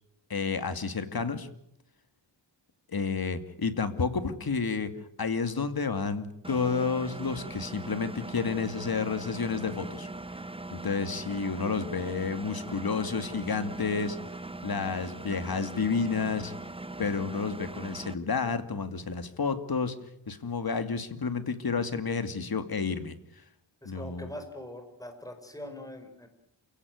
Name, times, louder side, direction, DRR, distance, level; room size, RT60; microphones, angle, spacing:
voice 1, 0.3-1.5 2.9-4.9 5.2-10.1 10.7-14.2 14.6-16.5 17.0-20.0 20.3-23.1 23.8-24.3, left 5 dB, 50° left, 10 dB, 2.5 m, -30 dB
Engine, 6.4-18.1, right 2 dB, 10° right, 0.9 m, -40 dB
voice 2, 23.8-26.3, left 1 dB, 10° left, 6 dB, 5.4 m, -42 dB
28.5 x 17.0 x 9.4 m, 0.73 s
wide cardioid pair, 100°, 45 cm